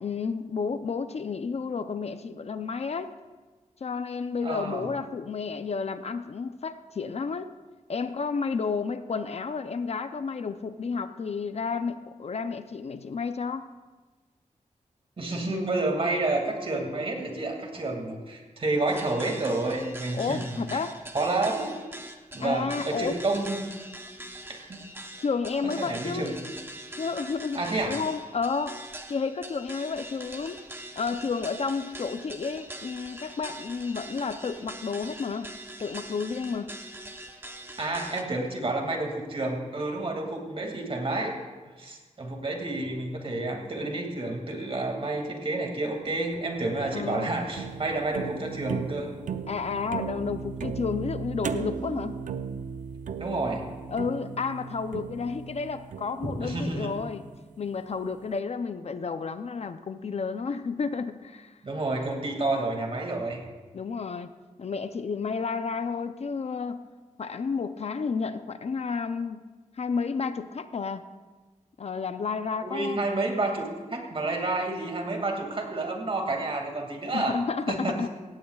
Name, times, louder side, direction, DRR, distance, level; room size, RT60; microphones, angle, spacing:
voice 1, 0.0-3.1 3.8-7.5 7.9-13.6 20.1-21.0 22.4-23.2 25.2-26.3 27.0-28.8 29.1-30.6 31.0-35.5 35.8-36.7 46.9-47.3 49.5-52.2 53.9-57.2 57.6-61.6 63.7-64.3 64.6-66.9 67.2-69.4 69.8-71.0 71.8-73.0 77.1-78.1, left 5 dB, 55° left, 10 dB, 0.5 m, -31 dB
voice 2, 4.4-4.9 15.2-20.6 21.1-21.8 22.3-23.7 24.7-24.8 25.6-26.3 27.5-28.0 37.8-41.3 41.8-49.1 53.2-53.6 56.2-56.9 61.6-63.4 72.6-77.4 77.7-78.0, right 2 dB, 45° right, 2 dB, 2.2 m, -29 dB
sound 1, 18.9-38.2, right 1 dB, 15° right, 0.9 m, -43 dB
sound 2, 46.3-57.5, right 6 dB, 75° right, 0.6 m, -37 dB
16.5 x 16.0 x 2.4 m, 1.3 s
wide cardioid pair, 120°, 13 cm